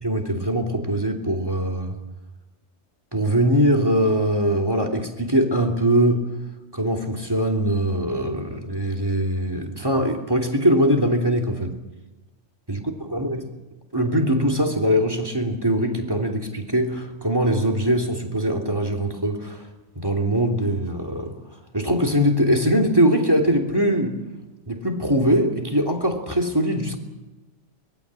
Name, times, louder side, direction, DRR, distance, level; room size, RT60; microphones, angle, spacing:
voice 1, 0.0-2.0 3.1-6.3 6.7-11.7 12.7-13.5 13.9-19.6 19.9-21.3 21.7-24.2 24.7-27.0, equal, 20° right, 4 dB, 3.1 m, -22 dB
24.5 x 21.0 x 7.7 m, 1.1 s
omnidirectional pair, 1.2 m